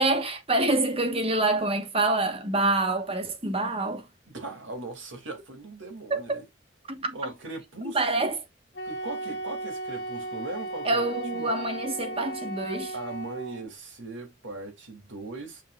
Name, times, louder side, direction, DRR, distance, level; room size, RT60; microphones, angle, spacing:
voice 1, 0.0-4.1 6.1-6.4 6.9-7.2 7.8-8.4 10.8-12.9, right 2 dB, 30° right, 1.3 m, -26 dB
voice 2, 4.3-6.4 7.1-8.3 8.8-11.5 12.9-15.6, right 2 dB, 85° right, 2.6 m, -39 dB
Wind instrument woodwind instrument, 8.7-13.6, right 2 dB, 65° left, 1.4 m, -36 dB
7.5 x 5.9 x 2.4 m
head